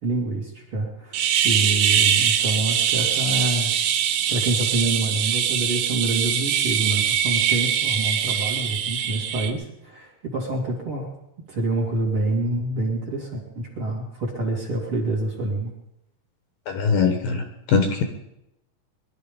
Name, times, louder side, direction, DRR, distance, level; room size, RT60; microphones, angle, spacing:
voice 1, 0.0-3.7 4.3-11.1 11.5-15.7, right 2 dB, 35° right, -1 dB, 3.0 m, -27 dB
sound 1, 1.1-9.5, right 9 dB, 70° right, 2.5 m, -22 dB
voice 2, 16.7-18.0, left 5 dB, 65° left, 6 dB, 2.7 m, -22 dB
22.5 x 12.0 x 5.3 m, 0.84 s
omnidirectional pair, 5.0 m